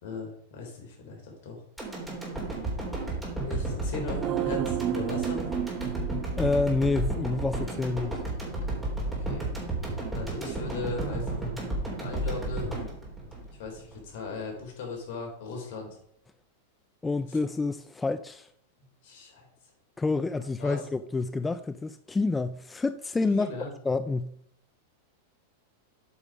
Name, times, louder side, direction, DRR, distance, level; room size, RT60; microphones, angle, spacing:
voice 1, 0.0-1.6 3.5-5.4 9.2-9.5 10.1-11.4 12.0-12.7 13.5-16.0 19.0-19.5 20.6-20.8 23.3-23.7, left 4 dB, 60° left, 3.6 m, -38 dB
sound 1, 1.8-14.0 14.4-14.5, right 2 dB, 5° right, 3.3 m, -32 dB
sound 2, 4.2-7.5 7.8-7.9, right 12 dB, 35° right, 0.7 m, -33 dB
voice 2, 6.4-8.2 17.0-18.5 20.0-23.5 23.9-24.4, left 3 dB, 10° left, 0.4 m, -28 dB
8.5 x 5.4 x 5.1 m
hypercardioid pair, 120°, 0 cm